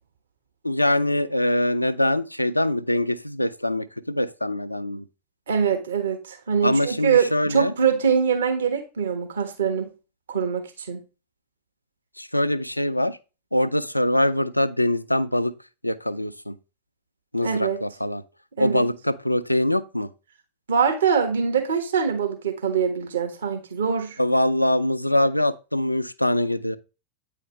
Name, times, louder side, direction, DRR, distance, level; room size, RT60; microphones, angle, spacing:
voice 1, 0.6-5.0 6.6-7.7 12.2-13.2 13.5-15.5 15.8-16.6 17.3-18.2 18.6-20.1 24.2-26.8, left 1 dB, 85° left, 0.5 m, -23 dB
voice 2, 5.5-9.9 10.3-11.0 17.4-17.8 18.6-18.9 20.7-24.2, right 6 dB, 65° right, 1.4 m, -23 dB
8.9 x 5.0 x 3.1 m
figure-of-eight pair, 90°, 0 cm